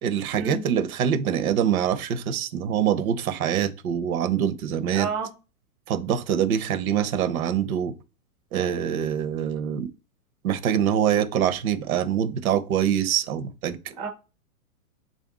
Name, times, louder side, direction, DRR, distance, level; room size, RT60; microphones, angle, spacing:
voice 1, 0.0-5.1 5.9-7.9 8.5-9.9 10.4-13.8, right 9 dB, 70° right, 0.8 m, -24 dB
voice 2, 4.8-5.3 11.0-11.2 14.0-14.1, right 4 dB, 15° right, 0.4 m, -30 dB
3.4 x 2.6 x 3.5 m
hypercardioid pair, 135°, 44 cm